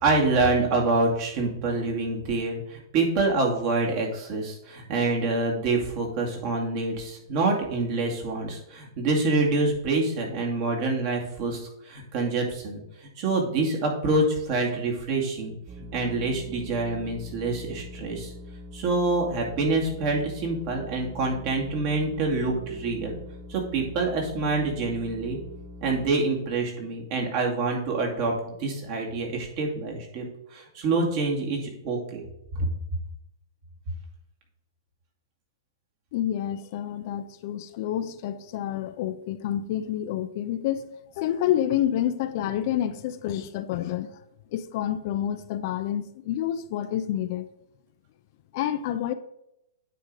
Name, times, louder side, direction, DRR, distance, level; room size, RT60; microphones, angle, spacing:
voice 1, 0.0-18.3 18.7-23.1 23.5-25.4 25.8-30.3 30.5-32.2 32.6-32.7, right 3 dB, 45° right, 2.3 m, -26 dB
sound 1, 15.7-26.2, left 2 dB, 25° right, 0.7 m, -43 dB
voice 2, 36.1-44.2 44.5-47.5 48.5-49.1, left 11 dB, 50° left, 0.5 m, -28 dB
9.1 x 3.8 x 4.8 m
hypercardioid pair, 120°, 2 cm